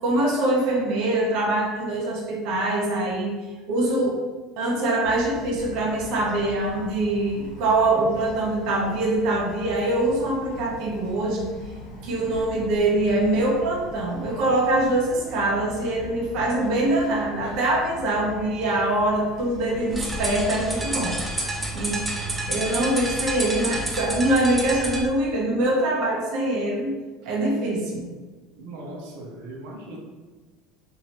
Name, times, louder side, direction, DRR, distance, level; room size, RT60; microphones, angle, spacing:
voice 1, 0.0-3.3 3.7-4.2 4.6-11.5 12.0-21.1 21.7-22.0 22.5-27.0 27.2-28.0, right 1 dB, 50° right, -3 dB, 0.7 m, -23 dB
Bird vocalization bird call bird song, 5.0-24.1, left 1 dB, 75° left, 1.1 m, -41 dB
sound 1, 19.9-25.1, right 1 dB, 10° right, 0.3 m, -29 dB
voice 2, 28.6-30.0, right 1 dB, 85° right, -2 dB, 0.7 m, -38 dB
3.1 x 2.7 x 2.9 m, 1.3 s
cardioid pair, 165°, 0 cm